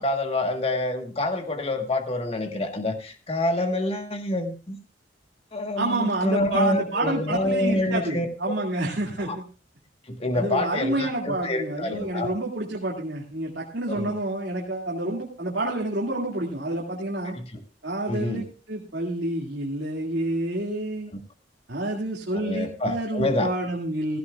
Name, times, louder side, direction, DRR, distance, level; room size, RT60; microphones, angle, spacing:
voice 1, 0.0-4.8 5.5-8.5 9.2-9.4 10.1-12.3 13.9-14.2 17.3-17.6 18.1-18.4 22.3-23.5, left 1 dB, 35° left, 5 dB, 1.5 m, -27 dB
voice 2, 5.8-9.4 10.3-17.3 17.8-21.1 21.7-24.2, right 1 dB, 70° right, -2 dB, 2.3 m, -28 dB
16.0 x 15.5 x 2.4 m, 0.35 s
head